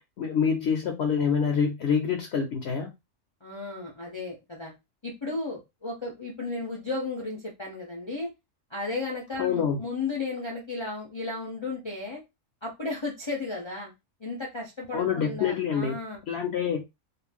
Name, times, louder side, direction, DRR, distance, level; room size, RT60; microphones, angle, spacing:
voice 1, 0.2-2.9 9.4-9.8 14.9-16.0 16.3-16.8, left 7 dB, 65° left, 0.7 m, -26 dB
voice 2, 3.4-4.7 5.0-8.3 8.7-12.2 12.6-13.9 14.2-16.2, left 3 dB, 40° left, 0.4 m, -34 dB
2.5 x 2.1 x 3.3 m
omnidirectional pair, 1.4 m